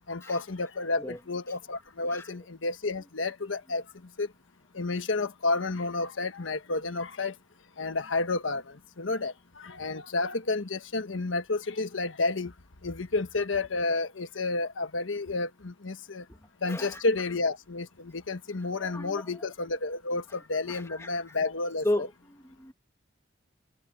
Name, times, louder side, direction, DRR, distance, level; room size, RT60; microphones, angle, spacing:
voice 1, 0.1-4.3 4.7-7.4 7.8-12.5 12.8-16.2 16.6-22.1, left 3 dB, 85° left, 1.2 m, -31 dB
voice 2, 16.7-17.0 18.8-19.3 20.7-21.1 21.8-22.7, left 1 dB, 15° left, 1.5 m, -34 dB
head